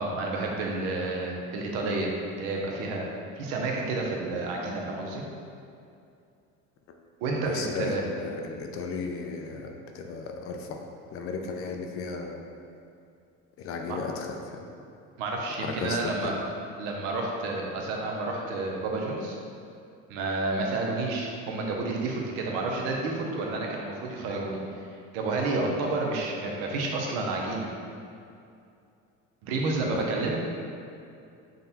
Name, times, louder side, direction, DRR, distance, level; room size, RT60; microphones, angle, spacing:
voice 1, 0.0-2.1 2.4-3.1 3.4-5.2 7.2-8.0 13.9-14.0 15.2-16.4 16.8-19.4 20.1-24.8 25.1-27.7 29.4-30.4, right 3 dB, 90° right, -1 dB, 0.7 m, -30 dB
voice 2, 7.4-10.9 11.1-12.4 13.6-14.7 15.6-16.4 29.8-30.3, left 4 dB, 45° left, 3 dB, 0.4 m, -35 dB
3.8 x 2.2 x 4.0 m, 2.5 s
cardioid pair, 120°, 32 cm